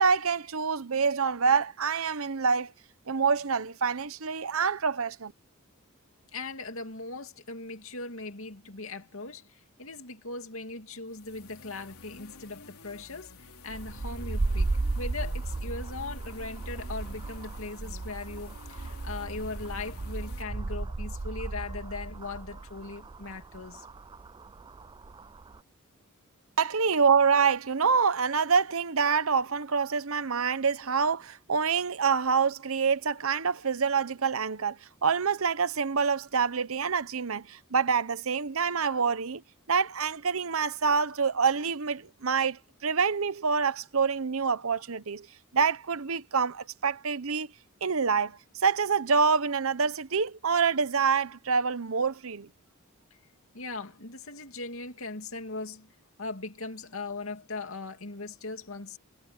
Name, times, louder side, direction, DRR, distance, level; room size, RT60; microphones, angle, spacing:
voice 1, 0.0-2.7 3.1-5.3 26.6-39.4 39.7-45.3 45.5-47.5 47.8-52.5, right 5 dB, 70° right, 0.9 m, -26 dB
voice 2, 6.3-23.9 53.5-55.9 56.2-59.0, left 3 dB, 65° left, 2.8 m, -39 dB
sound 1, 11.1-20.4, left 3 dB, 80° left, 3.5 m, -50 dB
sound 2, 13.7-25.6, right 3 dB, 20° right, 0.3 m, -35 dB
head